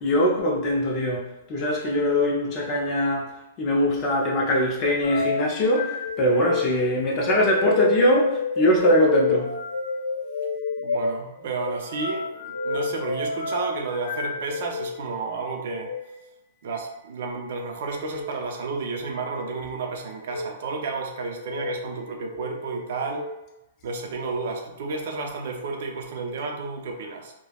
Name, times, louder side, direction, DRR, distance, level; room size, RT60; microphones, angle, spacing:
voice 1, 0.0-3.3 3.6-5.9 6.2-9.5, equal, 30° left, -1 dB, 0.6 m, -22 dB
sound 1, 5.0-15.0 15.7-16.0 18.0-18.3 19.1-19.6 20.2-20.5 21.3-21.8 22.3-23.3, left 4 dB, 85° left, 0.4 m, -29 dB
voice 2, 10.8-15.9 16.6-23.3 23.8-27.3, right 4 dB, 60° right, 2 dB, 0.5 m, -31 dB
3.3 x 2.1 x 2.3 m, 0.92 s
hypercardioid pair, 155°, 0 cm